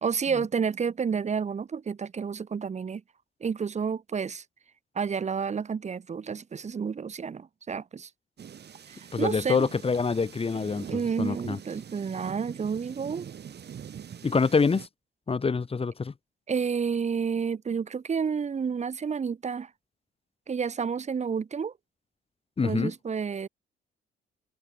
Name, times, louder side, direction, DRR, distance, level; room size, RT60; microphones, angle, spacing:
voice 1, 0.0-3.0 3.4-4.4 4.9-8.1 8.9-9.7 10.9-13.3 16.5-19.7 20.5-21.7 22.6-23.5, right 6 dB, 35° right, 1.1 m, -30 dB
sound 1, 8.4-14.9, right 8 dB, 55° right, 7.8 m, -44 dB
voice 2, 9.1-11.6 14.2-14.9 15.3-16.1 22.6-22.9, left 4 dB, 30° left, 1.5 m, -26 dB
cardioid pair, 90°, 20 cm